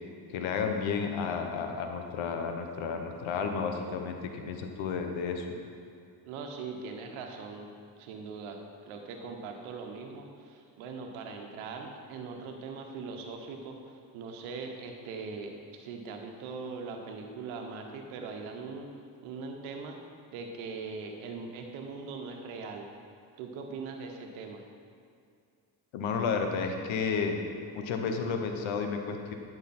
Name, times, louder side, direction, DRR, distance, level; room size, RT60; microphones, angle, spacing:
voice 1, 0.3-5.4 25.9-27.4 27.7-29.3, left 5 dB, 75° left, 5 dB, 1.2 m, -32 dB
voice 2, 6.2-7.7 8.0-18.9 19.2-20.0 20.3-22.9 23.4-24.6, right 4 dB, 85° right, 3 dB, 1.2 m, -41 dB
12.0 x 6.8 x 4.3 m, 2.4 s
supercardioid pair, 65°, 48 cm